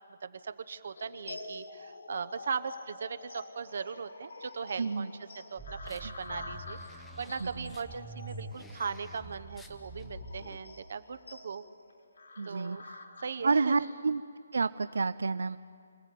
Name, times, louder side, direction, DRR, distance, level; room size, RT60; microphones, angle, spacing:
voice 1, 0.2-11.6 12.5-12.8 13.2-13.7, right 6 dB, 50° right, 11 dB, 0.8 m, -39 dB
sound 1, 1.0-14.0, left 3 dB, 75° left, 4.3 m, -48 dB
voice 2, 4.8-5.1 7.4-7.7 12.4-12.8 13.4-14.2 14.5-15.6, right 4 dB, 80° right, 14 dB, 0.5 m, -29 dB
sound 2, 5.6-10.6, right 1 dB, 5° left, 0.8 m, -46 dB
26.0 x 16.0 x 8.5 m, 2.2 s
hypercardioid pair, 175°, 0 cm